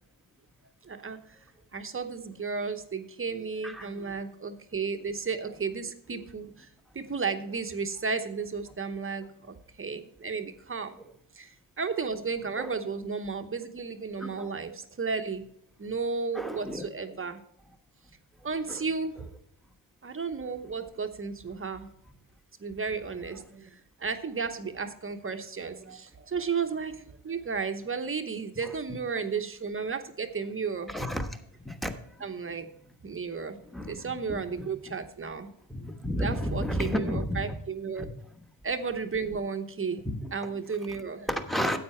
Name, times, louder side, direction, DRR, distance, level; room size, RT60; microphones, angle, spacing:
voice 1, 0.8-1.2 1.7-6.7 6.9-11.0 11.3-15.4 15.8-17.4 18.4-19.3 20.0-21.9 22.6-30.9 32.2-32.7 33.0-33.6 33.9-35.5 36.2-38.1 38.6-40.0 40.3-41.3, right 5 dB, 30° right, 7 dB, 0.9 m, -33 dB
voice 2, 14.2-14.5 16.3-16.9 18.7-18.8 28.6-28.7 30.9-31.3 31.6-31.9 33.7-34.0 34.3-34.7 35.7-37.5 38.0-38.1 40.0-40.3 41.3-41.8, equal, ahead, 5 dB, 1.2 m, -32 dB
9.6 x 8.1 x 4.4 m, 0.71 s
cardioid pair, 100°, 46 cm